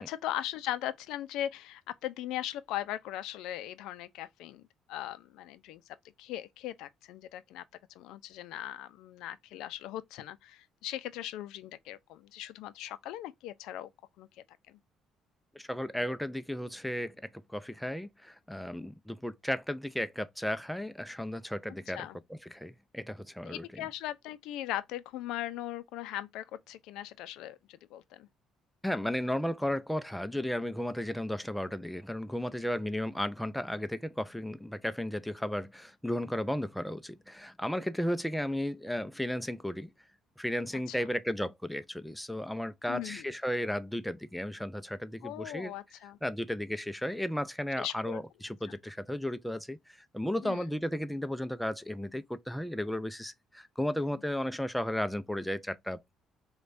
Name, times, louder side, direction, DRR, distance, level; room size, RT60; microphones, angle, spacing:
voice 1, 0.1-4.6 4.9-7.6 8.0-13.9 14.2-14.3 14.7-14.8 21.9-22.2 23.4-28.3 40.9-41.1 42.9-43.3 45.2-46.2 47.8-48.2 50.4-50.7 54.1-54.2, left 13 dB, 85° left, 0.3 m, -39 dB
voice 2, 15.6-23.8 28.8-39.9 40.4-45.7 46.2-56.1, left 1 dB, 5° left, 0.3 m, -34 dB
5.0 x 2.2 x 2.5 m
cardioid pair, 120°, 0 cm